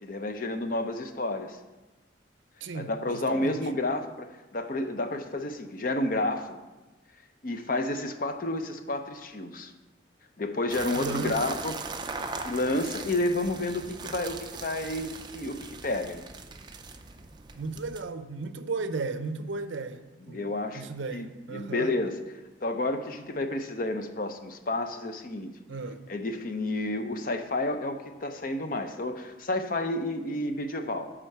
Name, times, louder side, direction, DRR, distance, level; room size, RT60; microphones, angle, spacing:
voice 1, 0.0-1.6 2.7-6.6 7.4-9.7 10.4-11.8 12.4-16.2 20.3-22.2 22.6-25.5 26.1-31.1, left 2 dB, 45° left, 0.6 m, -30 dB
voice 2, 2.6-3.6 11.0-11.4 11.7-11.8 17.5-22.0 25.7-26.0, right 4 dB, 70° right, 0.5 m, -35 dB
sound 1, 10.7-18.0, right 4 dB, 20° right, 0.4 m, -40 dB
9.1 x 3.7 x 6.6 m
head